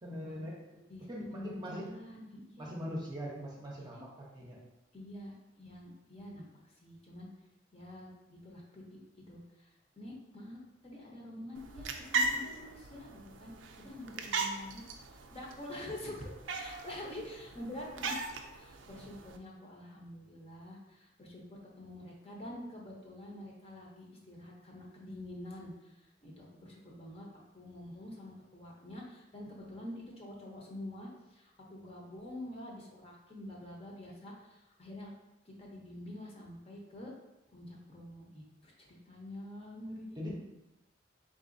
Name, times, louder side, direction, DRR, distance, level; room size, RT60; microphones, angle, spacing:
voice 1, 0.0-2.0 2.6-4.6 40.2-40.4, equal, 25° right, -3 dB, 0.7 m, -42 dB
voice 2, 0.9-2.7 3.9-4.0 4.9-7.3 7.7-13.5 13.8-27.3 27.5-35.1 35.4-37.1 37.5-40.2, left 1 dB, 30° left, -2 dB, 0.8 m, -47 dB
sound 1, 11.5-19.4, right 3 dB, 80° right, 0.4 m, -38 dB
3.8 x 3.8 x 2.6 m, 0.93 s
head